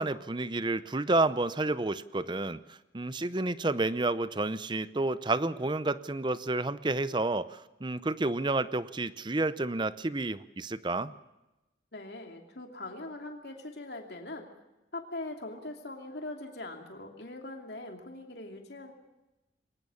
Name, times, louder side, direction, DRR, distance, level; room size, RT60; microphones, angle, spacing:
voice 1, 0.0-11.1, right 2 dB, 25° right, 15 dB, 0.7 m, -30 dB
voice 2, 11.9-14.5 14.9-18.9, left 2 dB, 65° left, 3 dB, 2.8 m, -41 dB
22.5 x 19.5 x 7.1 m, 0.99 s
head